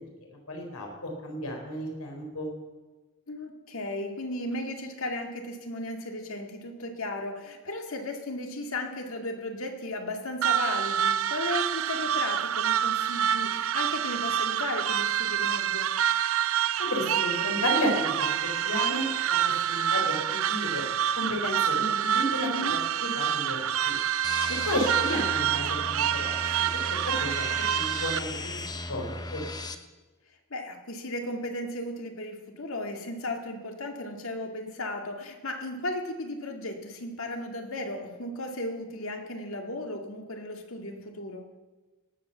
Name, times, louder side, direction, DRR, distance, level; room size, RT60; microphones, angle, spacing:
voice 1, 0.5-2.5 16.9-18.1 18.6-19.4 19.6-20.8 21.2-22.5 23.0-23.9 24.7-26.7 27.2-28.6 28.9-29.4, equal, 85° left, 2 dB, 4.2 m, -32 dB
voice 2, 3.3-15.9 22.4-22.8 24.5-24.8 30.5-41.4, left 1 dB, 65° left, 3 dB, 2.1 m, -35 dB
sound 1, 10.4-28.2, right 10 dB, 70° right, 0.5 m, -27 dB
sound 2, 24.2-29.7, left 2 dB, 20° left, 0.7 m, -37 dB
18.0 x 8.4 x 7.1 m, 1.2 s
head